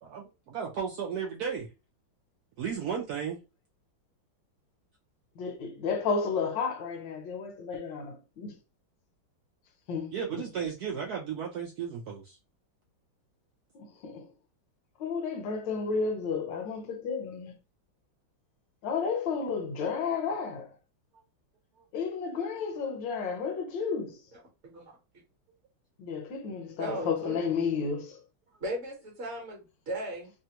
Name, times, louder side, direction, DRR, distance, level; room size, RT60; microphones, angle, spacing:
voice 1, 0.0-1.7 2.6-3.4 10.1-12.4, right 7 dB, 85° right, 0.8 m, -34 dB
voice 2, 5.4-8.6 9.9-10.5 13.7-14.3 15.0-17.5 18.8-20.7 21.9-24.2 26.0-28.2, left 5 dB, 70° left, 1.3 m, -32 dB
voice 3, 26.8-27.5 28.6-30.3, right 1 dB, 45° right, 1.0 m, -36 dB
3.3 x 2.2 x 2.8 m
omnidirectional pair, 2.2 m